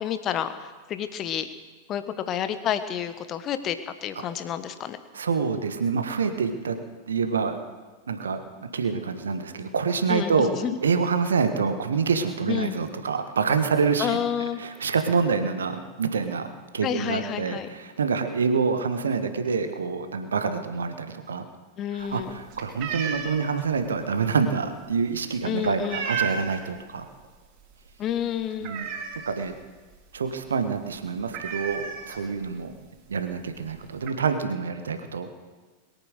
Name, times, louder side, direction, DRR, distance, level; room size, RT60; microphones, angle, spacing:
voice 1, 0.0-1.5 1.9-5.0 10.1-10.8 12.5-12.8 14.0-14.6 16.8-17.7 21.8-22.4 25.4-26.1 28.0-28.7, left 9 dB, 30° left, 11 dB, 1.2 m, -29 dB
voice 2, 5.1-6.8 7.1-7.6 8.1-8.4 8.7-10.5 10.8-14.2 14.6-21.4 22.0-27.0 28.6-28.9 29.2-29.5 30.1-32.7 33.1-35.3, right 5 dB, 70° right, 8 dB, 1.5 m, -26 dB
sound 1, 22.0-26.7 27.1-27.4 27.7-27.8 28.2-29.5 29.9-30.0 30.3-30.5 30.8-30.9 31.3-32.5 33.3-33.4 33.7-34.1, right 6 dB, 40° right, 4.0 m, -34 dB
21.5 x 8.9 x 6.6 m, 1.3 s
figure-of-eight pair, 90°, 0 cm